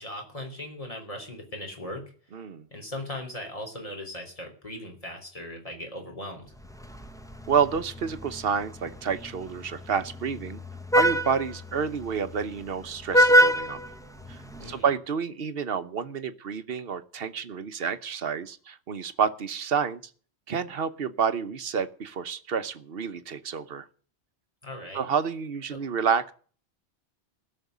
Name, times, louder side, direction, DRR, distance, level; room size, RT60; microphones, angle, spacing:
voice 1, 0.0-2.0 2.7-6.6 14.6-14.9 24.6-25.1 25.7-25.8, left 1 dB, 30° left, 2 dB, 3.7 m, -38 dB
voice 2, 2.3-2.7 7.5-10.6 10.9-13.8 14.3-20.0 20.5-23.9 24.9-26.3, right 6 dB, 60° right, 12 dB, 1.1 m, -29 dB
Vehicle horn car horn honking, 6.6-14.7, equal, 5° left, 1.2 m, -27 dB
16.0 x 6.4 x 9.4 m, 0.43 s
omnidirectional pair, 1.1 m